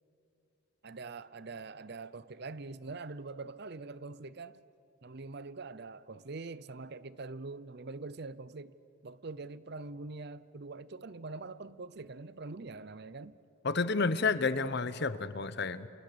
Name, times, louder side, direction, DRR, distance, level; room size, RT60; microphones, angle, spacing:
voice 1, 0.8-4.6 5.0-8.8 9.0-13.4, right 3 dB, 50° right, 0.6 m, -44 dB
voice 2, 13.6-15.9, left 4 dB, 50° left, 0.9 m, -30 dB
29.0 x 28.0 x 6.8 m
head